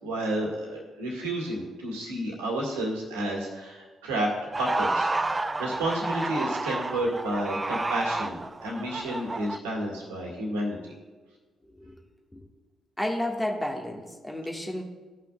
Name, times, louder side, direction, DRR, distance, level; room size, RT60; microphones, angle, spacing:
voice 1, 0.0-4.3 4.6-5.1 5.4-10.9, right 1 dB, 80° right, -3 dB, 1.8 m, -31 dB
sound 1, 4.5-9.6, right 2 dB, 25° right, 0.4 m, -30 dB
voice 2, 11.6-12.0 12.3-12.4 13.0-14.8, left 1 dB, 10° left, 0 dB, 1.5 m, -31 dB
16.0 x 5.8 x 2.3 m, 1.3 s
hypercardioid pair, 45°, 0 cm